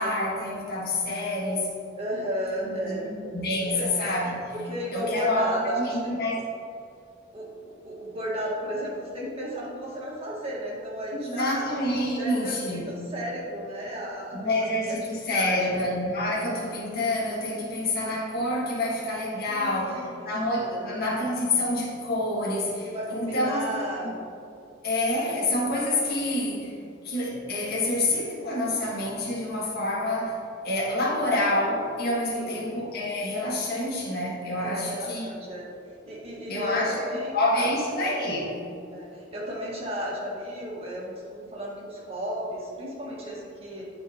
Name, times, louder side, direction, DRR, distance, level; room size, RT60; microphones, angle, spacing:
voice 1, 0.0-1.7 2.6-4.5 4.9-6.4 11.1-12.9 14.3-23.7 24.8-26.8 27.0-30.4 30.6-35.3 36.5-37.0 37.3-38.6, left 1 dB, 50° left, -5 dB, 1.7 m, -27 dB
voice 2, 2.0-3.1 3.7-3.9 4.7-6.2 7.3-7.5 7.8-11.7 12.2-14.5 14.9-15.0 15.3-15.6 19.4-20.3 20.6-20.9 22.8-24.3 32.3-32.7 34.6-35.7 36.1-37.7 38.9-43.8, equal, 30° right, -4 dB, 1.7 m, -34 dB
13.0 x 4.6 x 3.0 m, 2.6 s
head